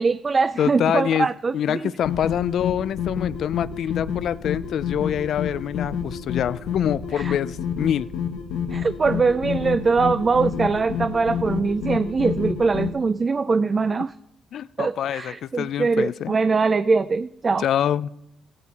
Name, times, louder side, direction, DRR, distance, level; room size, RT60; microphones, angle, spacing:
voice 1, 0.0-1.9 7.2-7.3 8.7-14.1 14.8-17.7, right 4 dB, 35° right, 0.4 m, -22 dB
voice 2, 0.6-1.3 1.5-8.1 14.5-16.3 17.6-18.1, left 9 dB, 70° left, 0.3 m, -25 dB
sound 1, 2.0-12.9, left 7 dB, 90° left, 1.3 m, -29 dB
16.0 x 8.7 x 4.1 m
cardioid pair, 90°, 0 cm